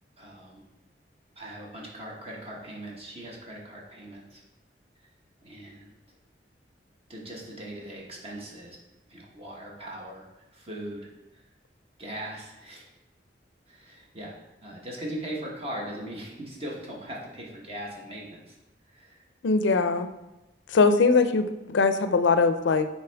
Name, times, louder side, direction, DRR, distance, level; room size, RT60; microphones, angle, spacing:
voice 1, 0.2-0.7 1.3-4.4 5.4-5.9 7.1-8.8 9.1-10.3 10.5-11.4 12.0-12.9 13.7-18.6 18.9-19.2, right 1 dB, 35° right, -3 dB, 1.1 m, -40 dB
voice 2, 19.4-20.1 20.7-22.9, left 4 dB, 85° left, 10 dB, 0.5 m, -21 dB
6.8 x 4.3 x 3.4 m, 0.98 s
head